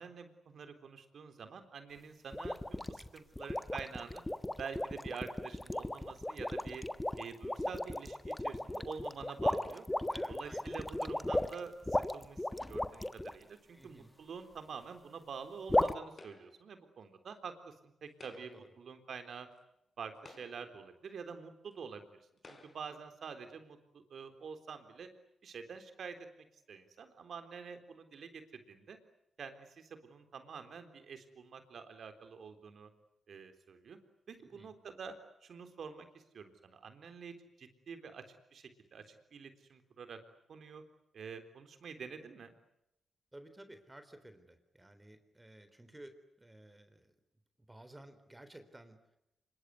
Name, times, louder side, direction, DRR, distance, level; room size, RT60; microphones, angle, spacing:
voice 1, 0.0-4.2 4.6-6.8 7.2-9.9 10.3-19.5 20.0-22.0 22.5-25.1 25.4-26.2 26.7-29.0 29.4-32.9 33.3-34.0 34.3-35.2 35.4-40.2 40.5-40.8 41.1-42.5, right 6 dB, 70° right, 8 dB, 3.8 m, -47 dB
sound 1, 2.3-13.3 15.7-15.9, left 1 dB, 15° left, 1.5 m, -35 dB
voice 2, 10.1-10.7 13.7-14.1 18.3-18.7 34.4-34.7 43.3-47.1 47.7-49.2, right 1 dB, 15° right, 9 dB, 3.9 m, -55 dB
sound 2, 16.2-16.7 18.1-18.7 19.6-19.7 20.1-20.8 21.7-21.8 22.4-23.0, left 3 dB, 45° left, 5.2 m, -56 dB
26.0 x 22.5 x 9.7 m, 0.79 s
cardioid pair, 65°, 0 cm